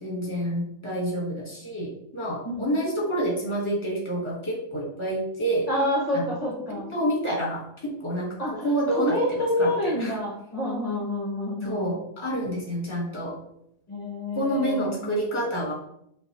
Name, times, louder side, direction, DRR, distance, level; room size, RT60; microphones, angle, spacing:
voice 1, 0.0-5.7 6.1-6.3 6.7-8.3 8.6-10.1 11.6-13.3 14.3-15.7, right 1 dB, 20° left, -3 dB, 1.0 m, -28 dB
voice 2, 5.7-6.9 8.4-11.9 13.9-15.0, left 1 dB, 35° left, -3 dB, 0.6 m, -28 dB
5.8 x 2.6 x 2.8 m, 0.75 s
omnidirectional pair, 1.7 m